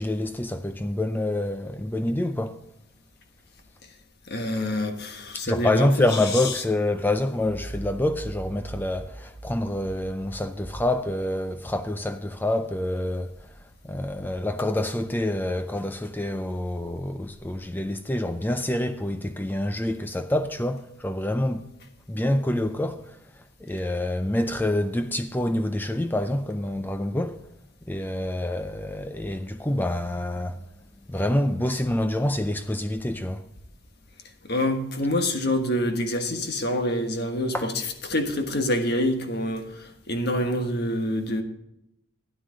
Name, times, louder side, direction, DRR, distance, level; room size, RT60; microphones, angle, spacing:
voice 1, 0.0-2.6 5.5-13.3 13.8-21.7 22.1-23.2 23.6-27.4 27.9-30.6 31.1-33.4 37.5-37.7, left 1 dB, 10° left, 0.4 m, -27 dB
voice 2, 4.3-6.5 34.5-41.4, left 1 dB, 55° left, 1.4 m, -26 dB
sound 1, 7.0-15.3 15.7-18.3, right 2 dB, 35° right, 1.6 m, -44 dB
13.0 x 9.9 x 3.9 m
head